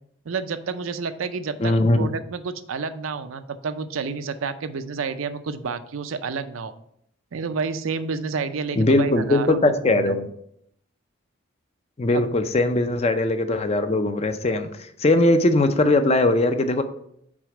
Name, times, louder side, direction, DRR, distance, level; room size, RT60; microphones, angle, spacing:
voice 1, 0.3-6.7 7.3-10.2 12.1-12.3, right 5 dB, 80° right, 11 dB, 0.5 m, -30 dB
voice 2, 1.6-2.0 8.8-10.3 12.0-14.7 15.0-16.8, left 2 dB, 30° left, 9 dB, 0.5 m, -20 dB
6.1 x 4.3 x 4.8 m, 0.72 s
head